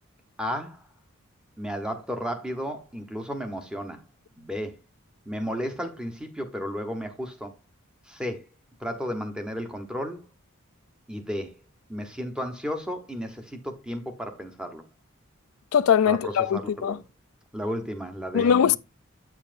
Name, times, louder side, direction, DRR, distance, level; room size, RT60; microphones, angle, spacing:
voice 1, 0.4-0.8 1.6-4.0 4.4-4.8 5.3-7.5 8.1-8.5 8.8-10.2 11.1-11.6 11.9-14.9 16.1-17.0 17.5-18.5, equal, 5° right, 1.0 m, -33 dB
voice 2, 15.7-17.0 18.3-18.8, left 8 dB, 75° left, 0.3 m, -21 dB
8.3 x 7.2 x 2.6 m
head